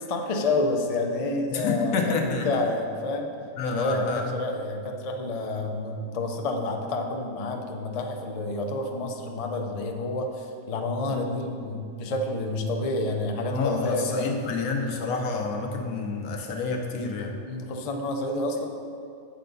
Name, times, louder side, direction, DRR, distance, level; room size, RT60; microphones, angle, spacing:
voice 1, 0.0-3.3 3.7-14.4 17.5-18.7, left 2 dB, 60° left, 3 dB, 0.3 m, -29 dB
voice 2, 1.5-2.6 3.6-4.2 11.1-11.2 13.5-17.3, left 4 dB, 85° left, 1 dB, 1.3 m, -28 dB
7.7 x 4.3 x 5.3 m, 2.5 s
omnidirectional pair, 1.5 m